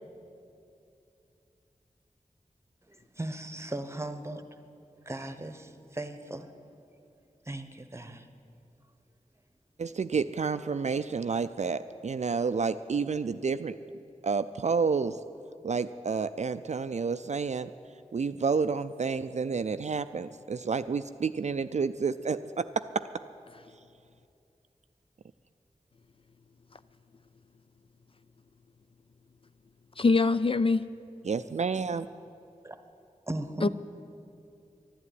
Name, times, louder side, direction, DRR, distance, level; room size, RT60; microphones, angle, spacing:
voice 1, 2.9-4.4 5.0-6.5 7.4-8.3 32.6-32.8 33.3-33.7, right 1 dB, 20° right, 9 dB, 1.0 m, -37 dB
voice 2, 9.8-13.7 14.2-15.2 15.6-17.7 18.1-22.7 31.2-32.1, right 5 dB, 55° right, 11 dB, 0.4 m, -30 dB
voice 3, 30.0-30.8 33.6-33.7, left 3 dB, 40° left, 13 dB, 0.3 m, -23 dB
12.0 x 11.0 x 9.5 m, 2.6 s
wide cardioid pair, 60°, 14 cm